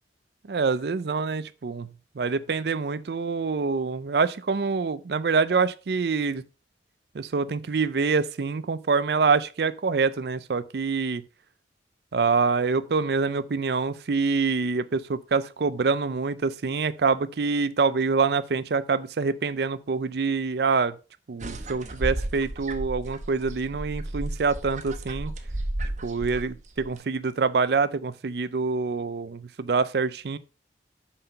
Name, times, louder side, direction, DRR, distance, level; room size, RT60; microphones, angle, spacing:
voice 1, 0.5-6.4 7.1-11.2 12.1-21.0 21.3-25.3 26.0-30.4, right 4 dB, 65° right, 0.5 m, -26 dB
sound 1, 21.4-27.0, right 1 dB, 45° right, 1.0 m, -33 dB
5.8 x 5.4 x 5.5 m
head